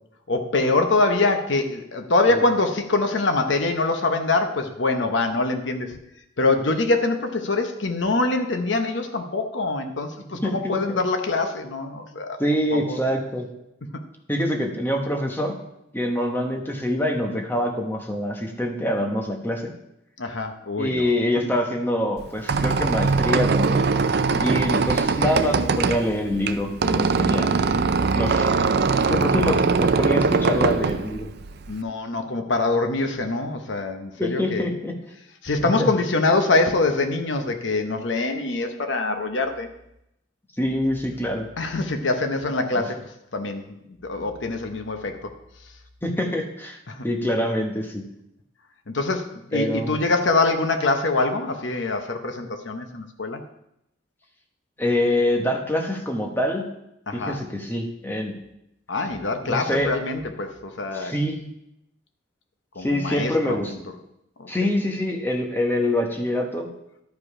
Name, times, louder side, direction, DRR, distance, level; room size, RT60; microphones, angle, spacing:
voice 1, 0.3-6.0 6.4-12.4 12.7-13.0 13.9-14.0 20.2-21.1 24.3-24.6 31.7-34.7 35.4-39.7 41.6-45.3 46.9-47.0 48.9-53.4 57.1-57.4 58.9-61.1 62.7-63.8 64.4-64.7, left 3 dB, 70° left, 6 dB, 0.9 m, -24 dB
voice 2, 10.4-11.0 12.4-13.5 14.3-15.6 15.9-19.7 20.8-23.9 24.4-27.6 28.1-28.5 29.1-31.3 34.2-35.0 35.8-35.9 40.6-41.5 42.7-42.8 46.0-48.1 49.5-50.0 54.8-56.7 57.1-58.4 59.5-59.9 60.9-61.4 62.8-63.7 64.5-66.7, left 1 dB, 10° left, 2 dB, 1.1 m, -25 dB
Squeak, 22.2-31.8, right 4 dB, 55° right, 0.4 m, -22 dB
11.5 x 5.2 x 4.9 m, 0.82 s
head